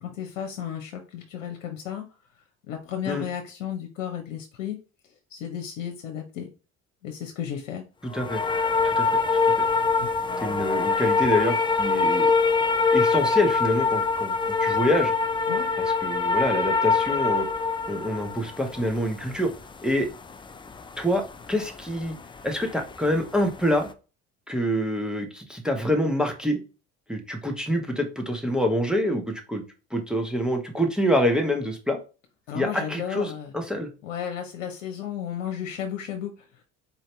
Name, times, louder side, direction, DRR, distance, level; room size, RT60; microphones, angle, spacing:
voice 1, 0.0-2.0 2.7-4.8 5.3-6.5 7.0-7.8 10.0-10.2 15.5-15.7 32.5-33.5 34.0-36.6, left 9 dB, 80° left, 3 dB, 0.8 m, -33 dB
voice 2, 8.0-8.4 8.8-9.1 9.6-9.7 10.4-12.3 12.9-15.1 15.8-17.5 17.9-19.5 19.8-20.1 21.0-22.2 22.4-23.9 24.5-26.6 27.1-29.6 29.9-32.0 32.5-33.9, equal, ahead, 3 dB, 1.0 m, -26 dB
sound 1, 8.1-23.1 23.4-23.8, left 4 dB, 15° left, 0.3 m, -24 dB
4.3 x 2.8 x 3.2 m, 0.32 s
hypercardioid pair, 65°, 37 cm